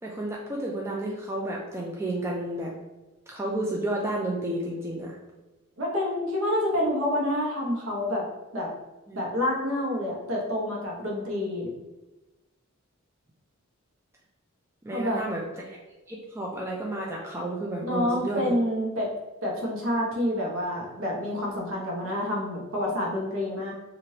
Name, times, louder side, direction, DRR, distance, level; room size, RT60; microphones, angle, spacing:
voice 1, 0.0-2.7 3.3-5.2 9.1-9.2 14.8-15.8 16.1-18.4, right 1 dB, 10° right, -3 dB, 0.3 m, -31 dB
voice 2, 5.8-8.2 8.5-8.7 9.1-11.7 14.9-15.2 17.8-19.1 19.4-23.7, left 1 dB, 65° right, -3 dB, 0.9 m, -28 dB
3.1 x 2.5 x 2.7 m, 1.1 s
head